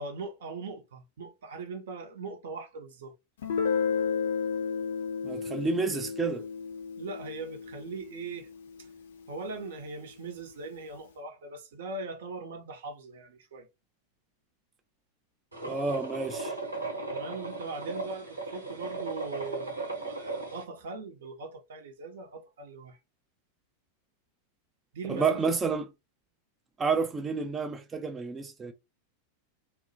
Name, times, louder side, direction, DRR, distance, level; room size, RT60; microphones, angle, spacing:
voice 1, 0.0-3.1 7.0-8.5 8.8-8.9 9.3-13.7 17.1-23.0 24.9-25.5, right 3 dB, 60° right, 0.6 m, -40 dB
Guitar, 3.4-8.9, left 6 dB, 60° left, 0.5 m, -32 dB
voice 2, 5.2-6.4 15.7-16.5 25.1-25.9 26.8-28.7, right 4 dB, 20° right, 0.3 m, -29 dB
sound 1, 15.5-20.6, right 3 dB, 85° right, 0.9 m, -36 dB
2.3 x 2.0 x 2.6 m
figure-of-eight pair, 90°, 0 cm